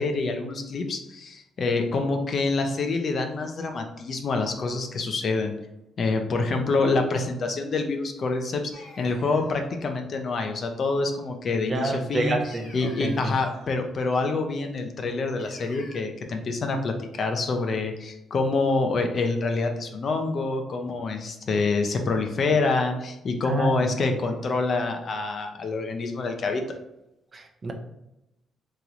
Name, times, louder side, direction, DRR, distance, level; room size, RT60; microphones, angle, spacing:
voice 1, 0.0-5.5 6.0-12.4 12.7-26.6, left 3 dB, 50° left, 4 dB, 0.5 m, -26 dB
sound 1, 8.7-9.6 12.5-13.8 15.4-16.0, left 2 dB, 75° left, 1.0 m, -48 dB
voice 2, 11.7-13.3 23.4-23.9 27.3-27.7, right 2 dB, 35° right, 5 dB, 0.5 m, -29 dB
2.9 x 2.9 x 2.5 m, 0.89 s
cardioid pair, 90°, 0 cm